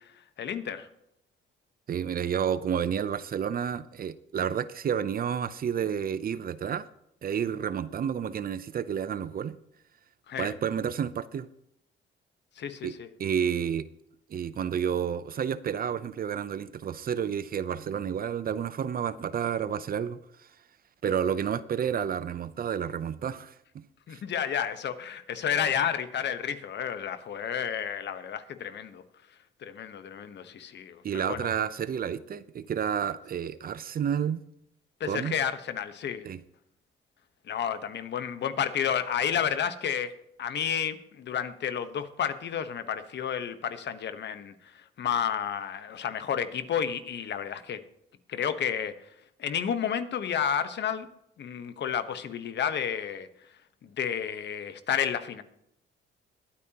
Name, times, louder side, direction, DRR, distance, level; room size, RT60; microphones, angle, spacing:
voice 1, 0.4-0.9 10.3-10.5 12.6-13.1 24.1-29.0 29.6-31.5 35.0-36.2 37.5-40.1 40.4-44.5 45.0-47.8 48.3-48.9 49.4-51.1 51.4-53.3 53.8-55.4, left 8 dB, 60° left, 10 dB, 1.2 m, -31 dB
voice 2, 1.9-6.9 7.2-9.6 10.4-11.5 12.8-13.8 14.3-20.2 21.0-23.8 24.1-24.2 31.0-34.4 35.0-35.3 36.2-36.4, right 8 dB, 50° right, 16 dB, 0.6 m, -30 dB
21.5 x 8.8 x 2.9 m, 0.78 s
cardioid pair, 90°, 20 cm